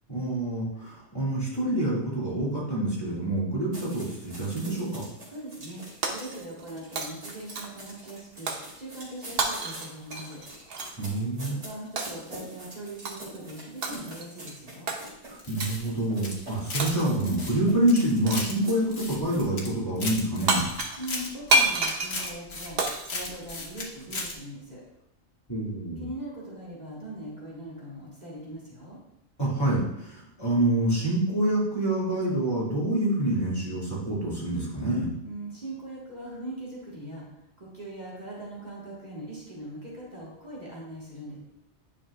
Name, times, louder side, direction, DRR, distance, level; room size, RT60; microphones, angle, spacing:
voice 1, 0.1-5.0 11.0-11.6 15.3-20.6 25.5-26.1 29.4-35.1, right 1 dB, 20° left, -7 dB, 2.4 m, -27 dB
sound 1, 3.7-19.5, right 1 dB, 85° right, 2.7 m, -45 dB
voice 2, 5.3-5.8 6.1-10.4 11.6-14.9 21.0-22.8 23.1-24.8 26.0-29.0 35.2-41.4, right 1 dB, 40° right, -6 dB, 1.8 m, -40 dB
Shatter, 6.0-6.7 7.0-7.9 8.5-8.7 9.4-11.0 12.0-12.3 13.0-13.4 13.8-14.3 14.9-15.0 15.6-15.9 16.8-17.3 18.3-18.6 20.2-20.3 20.5-24.1, right 2 dB, 60° right, 1.0 m, -29 dB
sound 2, 15.4-16.9 17.2-18.5 18.9-19.7 20.0-23.8 24.1-24.3, left 3 dB, 65° left, 1.4 m, -36 dB
9.7 x 5.9 x 2.4 m, 0.82 s
omnidirectional pair, 1.2 m